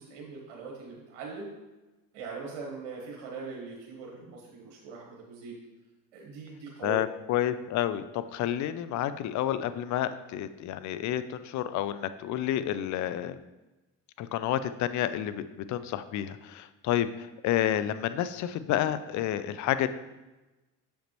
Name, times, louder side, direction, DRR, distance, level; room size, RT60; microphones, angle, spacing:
voice 1, 0.0-1.5 2.1-5.6 6.1-7.1, right 4 dB, 80° right, -2 dB, 1.2 m, -41 dB
voice 2, 6.8-13.4 14.2-19.9, left 11 dB, 50° left, 13 dB, 0.5 m, -30 dB
6.5 x 5.2 x 3.1 m, 1.1 s
supercardioid pair, 70°, 37 cm